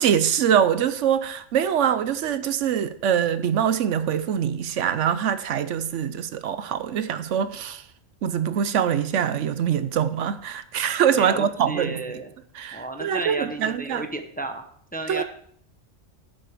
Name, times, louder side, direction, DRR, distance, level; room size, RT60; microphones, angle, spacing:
voice 1, 0.0-7.8 8.2-12.0 12.6-14.1 15.1-15.2, right 8 dB, 75° right, 1.0 m, -24 dB
voice 2, 11.2-12.3 12.7-14.6 14.9-15.2, right 2 dB, 10° left, 0.8 m, -32 dB
10.0 x 7.6 x 4.9 m
omnidirectional pair, 1.3 m